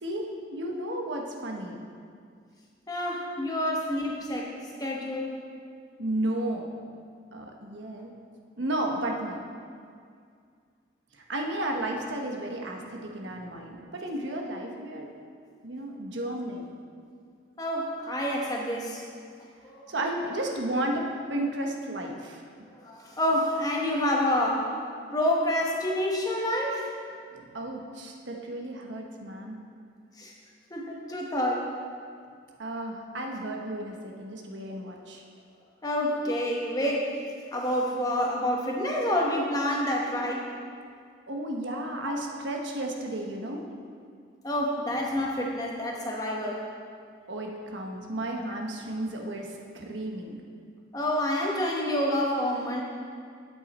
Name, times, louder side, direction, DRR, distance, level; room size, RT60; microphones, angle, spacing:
voice 1, 0.0-1.8 6.0-6.7 7.3-8.1 8.6-9.4 11.3-15.1 15.6-16.7 19.9-22.4 27.3-29.6 32.6-35.2 41.3-43.6 47.3-50.4, right 1 dB, 75° right, 1 dB, 1.1 m, -33 dB
voice 2, 2.9-5.3 17.6-19.0 19.6-19.9 22.8-24.7 25.1-26.9 30.2-30.3 30.7-31.7 35.8-37.1 37.5-40.5 42.0-42.2 44.4-46.6 50.9-52.8, left 1 dB, 20° left, -2 dB, 1.1 m, -28 dB
10.0 x 8.3 x 4.2 m, 2.2 s
head